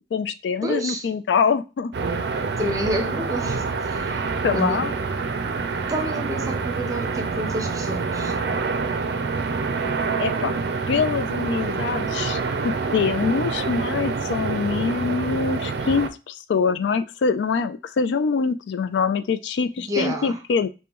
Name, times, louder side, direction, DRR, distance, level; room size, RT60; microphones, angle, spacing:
voice 1, 0.1-1.9 4.4-5.0 10.2-10.5 10.9-20.7, left 5 dB, 80° left, 0.4 m, -24 dB
voice 2, 0.6-1.1 2.6-4.9 5.9-8.4 19.8-20.4, equal, 20° right, 0.6 m, -29 dB
sound 1, 1.9-16.1, right 4 dB, 65° right, 0.4 m, -27 dB
5.2 x 2.2 x 2.9 m
head